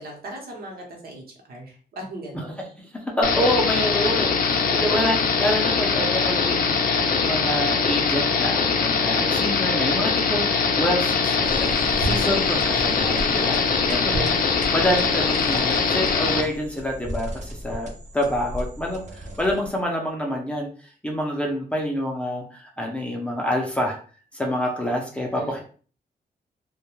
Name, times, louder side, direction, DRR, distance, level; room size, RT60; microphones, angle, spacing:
voice 1, 0.0-2.6 4.5-4.7 9.1-9.5 12.1-13.0 13.4-13.9 25.3-25.6, right 1 dB, 70° right, 0 dB, 0.9 m, -39 dB
voice 2, 2.9-6.8 7.1-13.6 13.9-24.0 24.3-25.6, equal, 10° left, -1 dB, 0.5 m, -27 dB
sound 1, 3.2-16.4, left 5 dB, 65° left, 0.4 m, -22 dB
sound 2, 11.4-19.8, right 1 dB, 50° right, 0.5 m, -35 dB
2.2 x 2.1 x 3.0 m, 0.41 s
wide cardioid pair, 150°, 16 cm